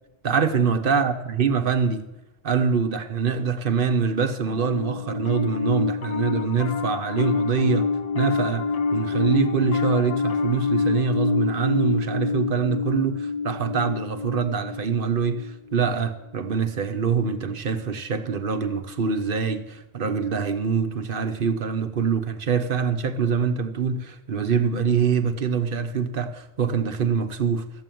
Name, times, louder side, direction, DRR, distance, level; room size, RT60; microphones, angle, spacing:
voice 1, 0.2-2.1 2.4-7.9 8.1-8.7 8.9-27.6, right 6 dB, 55° right, 1.2 m, -24 dB
Piano, 4.5-15.9, left 4 dB, 40° left, 0.8 m, -27 dB
14.0 x 7.8 x 9.2 m
omnidirectional pair, 1.1 m